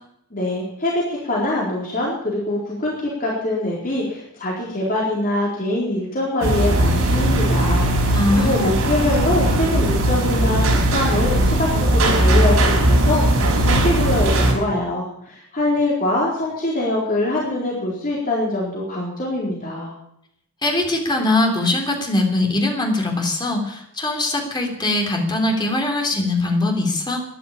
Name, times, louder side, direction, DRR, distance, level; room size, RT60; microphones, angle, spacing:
voice 1, 0.3-19.9, left 1 dB, 40° left, -4 dB, 4.1 m, -24 dB
sound 1, 6.4-14.5, right 1 dB, 75° right, 5.6 m, -18 dB
voice 2, 8.1-8.7 20.6-27.2, left 2 dB, 20° left, 2 dB, 3.4 m, -21 dB
13.5 x 11.0 x 8.7 m, 0.75 s
head